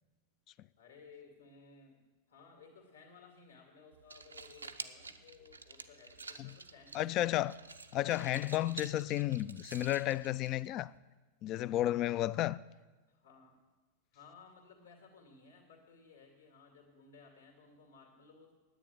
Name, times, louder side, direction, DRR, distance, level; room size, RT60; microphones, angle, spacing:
voice 1, 0.8-2.0 2.3-7.4 9.2-9.4 13.1-13.6 14.1-18.5, left 4 dB, 70° left, 2.3 m, -58 dB
sound 1, 3.9-11.0, right 4 dB, 80° right, 0.6 m, -50 dB
voice 2, 6.9-7.5 7.9-10.9 11.4-12.6, left 14 dB, 35° left, 0.3 m, -32 dB
10.0 x 8.9 x 9.3 m
figure-of-eight pair, 90°, 0 cm